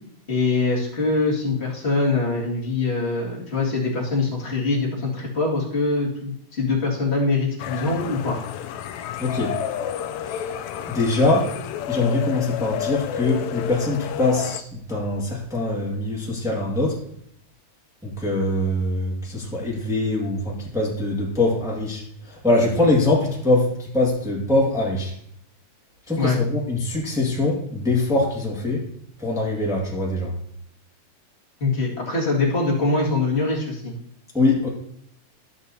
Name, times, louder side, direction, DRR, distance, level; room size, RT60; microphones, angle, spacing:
voice 1, 0.3-8.4 26.2-26.4 31.6-33.9, left 3 dB, 25° left, -4 dB, 1.7 m, -23 dB
sound 1, 7.6-14.6, left 9 dB, 80° left, 1.7 m, -30 dB
voice 2, 9.2-9.5 10.3-10.5 10.9-11.5 11.9-17.0 18.0-25.1 26.1-28.8 29.2-30.3 34.3-34.7, left 2 dB, ahead, -3 dB, 0.9 m, -23 dB
14.0 x 6.2 x 2.7 m, 0.71 s
omnidirectional pair, 3.6 m